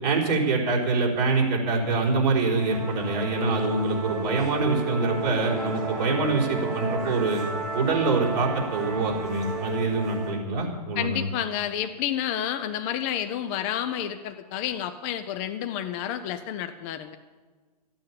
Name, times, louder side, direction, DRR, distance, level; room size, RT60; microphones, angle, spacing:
voice 1, 0.0-7.4 7.7-11.2, right 3 dB, 40° right, -3 dB, 4.1 m, -25 dB
Musical instrument, 2.5-10.3, right 2 dB, ahead, 4.0 m, -33 dB
voice 2, 11.0-17.2, left 10 dB, 20° left, 10 dB, 0.5 m, -30 dB
14.0 x 9.0 x 8.7 m, 1.4 s
hypercardioid pair, 155°, 21 cm